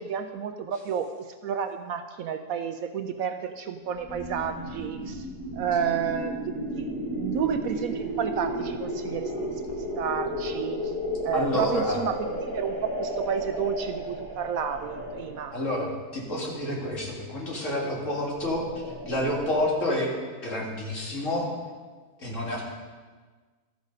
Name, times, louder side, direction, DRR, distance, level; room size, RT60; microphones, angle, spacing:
voice 1, 0.0-5.3 5.5-9.6 10.0-10.9 11.2-15.5, right 7 dB, 70° right, 8 dB, 0.9 m, -31 dB
sound 1, 3.9-15.5 18.3-19.7, equal, 15° right, 2.1 m, -33 dB
voice 2, 11.3-12.0 15.5-15.9 16.1-18.7 19.0-20.1 20.4-21.5 22.2-22.6, left 1 dB, 50° left, -3 dB, 2.6 m, -28 dB
14.0 x 6.5 x 5.3 m, 1.4 s
omnidirectional pair, 1.7 m